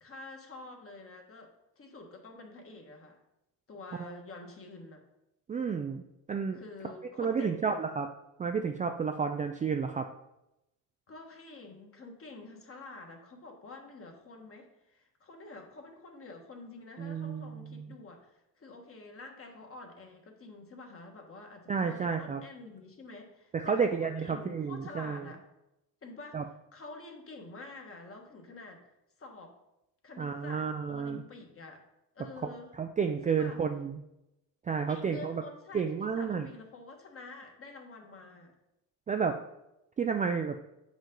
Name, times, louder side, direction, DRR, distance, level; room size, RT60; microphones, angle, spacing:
voice 1, 0.0-3.2 3.7-5.0 6.5-7.8 11.1-25.4 26.0-26.4 26.7-28.8 29.2-29.6 30.0-31.8 32.1-32.7 33.3-33.6 34.9-38.5, left 3 dB, 35° left, 3 dB, 1.4 m, -48 dB
voice 2, 5.5-6.0 6.3-6.6 7.2-8.1 8.4-10.1 17.0-17.8 21.7-22.4 23.5-25.2 26.3-26.4 30.2-31.2 32.8-34.0 34.7-35.4 35.7-36.5 39.1-39.4 40.0-40.6, right 6 dB, 20° right, 5 dB, 0.3 m, -31 dB
7.4 x 5.3 x 3.8 m, 0.88 s
cardioid pair, 115°, 39 cm